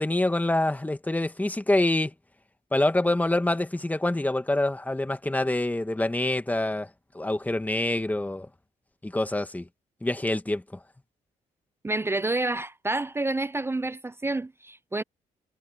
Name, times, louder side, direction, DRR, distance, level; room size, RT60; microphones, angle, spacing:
voice 1, 0.0-2.1 2.7-6.9 7.1-8.5 9.0-9.7 10.0-10.6, left 1 dB, 10° left, 1.5 m, -26 dB
voice 2, 11.8-15.0, right 2 dB, 15° right, 0.6 m, -29 dB
cardioid pair, 80°, 15 cm